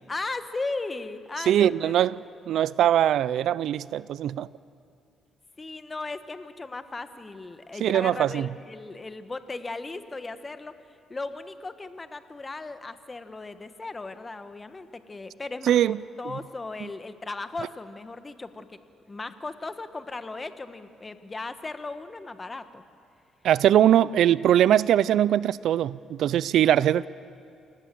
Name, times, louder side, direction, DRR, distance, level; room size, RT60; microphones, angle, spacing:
voice 1, 0.1-1.9 5.6-10.7 11.1-18.8 19.1-22.8, left 3 dB, 25° left, 10 dB, 1.3 m, -37 dB
voice 2, 1.5-2.2 2.5-4.5 7.8-8.5 15.7-16.0 16.8-16.9 23.4-27.1, right 11 dB, 75° right, 20 dB, 0.5 m, -21 dB
28.0 x 18.0 x 7.7 m, 2.5 s
cardioid pair, 90°, 0 cm